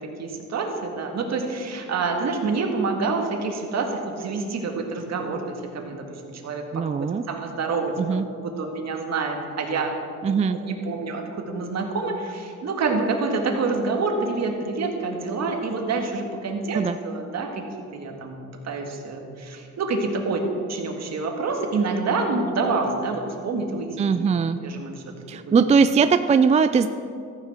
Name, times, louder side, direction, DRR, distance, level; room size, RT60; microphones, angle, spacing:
voice 1, 0.0-7.9 8.3-9.9 10.2-17.6 17.9-18.4 18.6-20.4 20.7-24.1 24.6-24.9 25.3-25.5, right 3 dB, 60° right, 2 dB, 1.9 m, -27 dB
voice 2, 6.7-7.2 8.0-8.3 10.2-10.6 16.7-17.0 24.0-24.6 25.3-26.9, right 5 dB, 25° right, 10 dB, 0.4 m, -20 dB
14.0 x 9.6 x 4.4 m, 2.4 s
cardioid pair, 90°, 30 cm